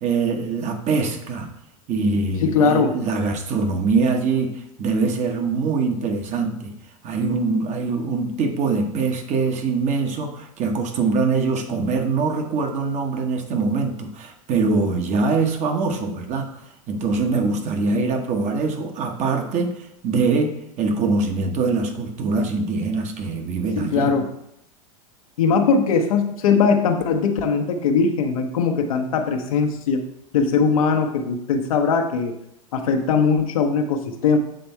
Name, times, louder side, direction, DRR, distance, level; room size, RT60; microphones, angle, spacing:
voice 1, 0.0-1.5 1.9-6.7 7.0-16.5 16.9-19.8 20.0-24.1, right 4 dB, 40° right, 4 dB, 1.1 m, -23 dB
voice 2, 2.4-2.9 23.8-24.3 25.4-30.0 30.3-32.3 32.7-34.4, left 5 dB, 75° left, 4 dB, 1.0 m, -20 dB
7.6 x 3.4 x 4.4 m, 0.79 s
hypercardioid pair, 95°, 18 cm